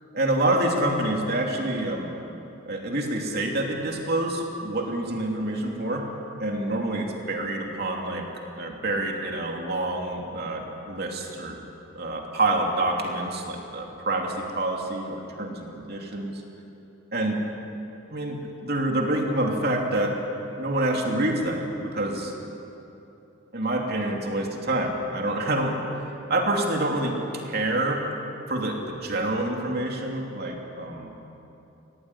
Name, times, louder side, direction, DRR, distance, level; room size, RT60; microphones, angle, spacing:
voice 1, 0.1-2.1 2.7-6.1 6.4-8.3 8.6-11.6 11.9-16.4 17.1-17.4 18.1-20.2 20.5-22.3 23.5-28.1 28.5-31.1, right 1 dB, 45° right, 1 dB, 3.0 m, -27 dB
24.5 x 17.5 x 10.0 m, 2.9 s
head